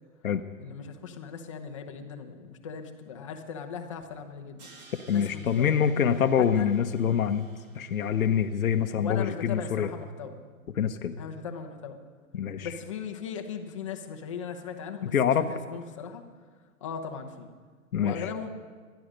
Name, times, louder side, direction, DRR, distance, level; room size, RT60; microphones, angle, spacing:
voice 1, 0.6-4.6 5.1-5.8 6.4-6.7 8.9-10.4 11.2-12.0 12.6-16.2 16.8-17.5 18.0-18.5, left 7 dB, 20° left, 4 dB, 0.9 m, -38 dB
Crash cymbal, 4.6-9.6, right 3 dB, 30° right, 2.5 m, -56 dB
voice 2, 5.1-7.5 7.7-9.9 10.8-11.1 12.3-12.7 15.0-15.5 17.9-18.3, left 8 dB, 70° left, 6 dB, 1.0 m, -25 dB
20.0 x 12.5 x 5.2 m, 1.5 s
hypercardioid pair, 165°, 44 cm